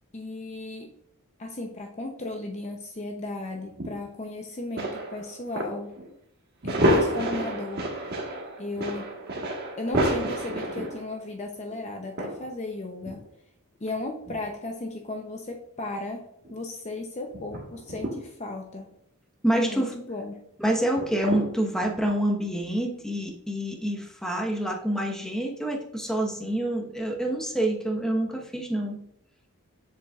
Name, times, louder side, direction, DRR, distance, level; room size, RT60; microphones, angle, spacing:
voice 1, 0.1-0.9 1.4-6.0 6.6-7.9 8.6-9.1 9.8-13.2 13.8-16.2 16.5-18.9 19.5-20.4, left 2 dB, 30° left, 3 dB, 0.7 m, -35 dB
sound 1, 3.8-3.9 4.8-5.7 6.0-6.1 6.6-11.3 11.7-11.8 12.2-12.5 13.0-13.2 13.9-14.6 16.4-16.5 17.3-18.2 19.7-19.8 21.0-21.5 21.8-21.9, equal, 45° right, 1.4 m, -29 dB
voice 2, 19.4-19.9 20.6-29.0, right 1 dB, 5° left, 1 dB, 1.0 m, -27 dB
7.6 x 7.2 x 2.4 m, 0.75 s
head